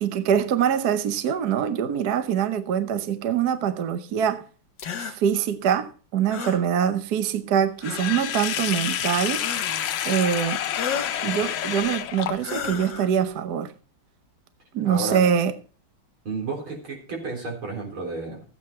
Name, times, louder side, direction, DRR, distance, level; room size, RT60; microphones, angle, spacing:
voice 1, 0.0-4.4 5.0-9.4 10.0-10.6 11.2-13.7 14.7-15.5, right 8 dB, 60° right, 1.2 m, -24 dB
sound 1, 4.8-5.2 6.3-6.6 7.8-8.3 9.4-9.9 10.7-11.2 12.4-13.1, left 6 dB, 60° left, 1.7 m, -33 dB
Sink (filling or washing), 7.8-12.7, left 10 dB, 75° left, 1.5 m, -28 dB
voice 2, 14.8-15.2 16.2-18.4, right 3 dB, 80° right, 4.7 m, -31 dB
14.5 x 8.6 x 4.3 m
omnidirectional pair, 2.3 m